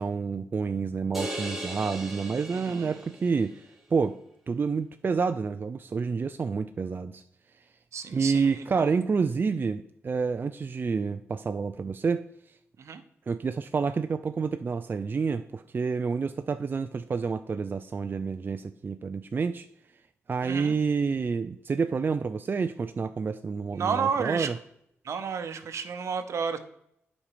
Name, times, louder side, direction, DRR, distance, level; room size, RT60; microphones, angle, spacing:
voice 1, 0.0-3.6 3.9-4.2 4.5-7.2 8.1-12.2 13.3-19.7 20.3-24.6, right 5 dB, 45° right, 9 dB, 0.4 m, -28 dB
sound 1, 1.1-3.5, right 1 dB, 5° right, 2.0 m, -37 dB
voice 2, 2.5-2.9 7.9-8.5 8.8-8.9 12.8-13.0 20.4-20.7 23.7-24.5 25.0-26.6, right 6 dB, 70° right, 9 dB, 0.9 m, -31 dB
8.6 x 5.3 x 4.9 m, 0.74 s
cardioid pair, 70°, 5 cm